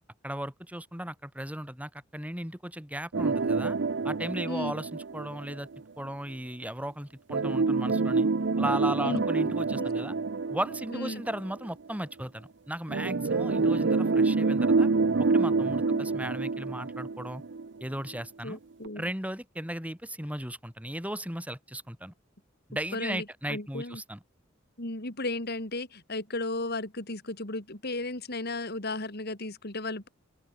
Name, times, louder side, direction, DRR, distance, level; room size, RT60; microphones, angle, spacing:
voice 1, 0.2-3.8 4.0-5.7 6.0-8.3 8.6-10.2 10.5-14.9 15.2-17.4 17.8-18.6 19.0-22.1 22.7-24.2, right 1 dB, 5° right, 6.8 m, -36 dB
sound 1, 3.1-5.8 7.3-11.7 12.9-17.8 18.2-18.3 18.9-19.0, right 4 dB, 60° right, 0.7 m, -27 dB
voice 2, 9.0-9.9 10.9-11.2 15.8-16.0 18.4-19.1 22.9-24.0 24.8-30.1, left 2 dB, 55° left, 4.4 m, -35 dB
open air
head